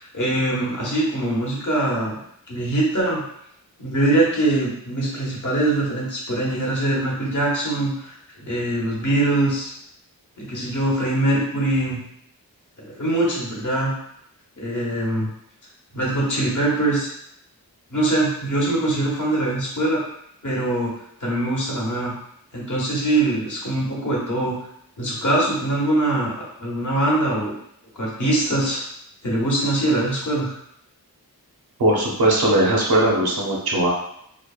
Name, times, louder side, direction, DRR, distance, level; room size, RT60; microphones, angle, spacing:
voice 1, 0.0-2.2 2.5-3.2 3.8-9.7 10.4-12.0 12.8-13.9 14.6-15.3 15.9-17.1 17.9-20.0 20.4-20.9 21.2-22.1 22.5-24.6 25.0-27.6 27.9-28.8 29.2-30.5, right 1 dB, 55° left, -5 dB, 1.0 m, -23 dB
voice 2, 31.8-33.9, right 1 dB, 85° right, -3 dB, 0.8 m, -19 dB
3.2 x 2.0 x 2.3 m, 0.73 s
wide cardioid pair, 95°, 37 cm